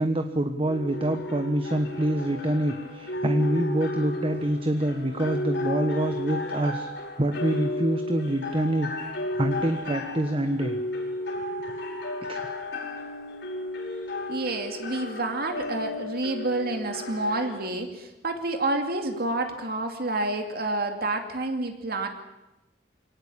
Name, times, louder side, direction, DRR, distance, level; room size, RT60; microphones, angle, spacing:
voice 1, 0.0-6.9 7.2-8.9 9.4-10.8 12.3-12.4, right 1 dB, 30° right, 7 dB, 1.3 m, -26 dB
sound 1, 0.7-17.7, left 1 dB, 70° left, 5.4 m, -33 dB
voice 2, 14.3-22.1, right 2 dB, 60° right, 5 dB, 2.4 m, -29 dB
24.0 x 18.5 x 8.7 m, 0.95 s
head